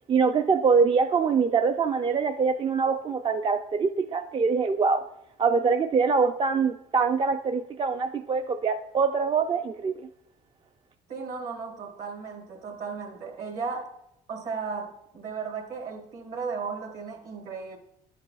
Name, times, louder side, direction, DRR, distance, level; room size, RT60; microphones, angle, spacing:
voice 1, 0.1-5.0 5.4-10.1, right 5 dB, 30° right, 0.4 m, -24 dB
voice 2, 11.1-13.9 14.3-17.8, right 5 dB, 60° right, 1.9 m, -35 dB
10.5 x 6.6 x 2.4 m
cardioid pair, 110°, 17 cm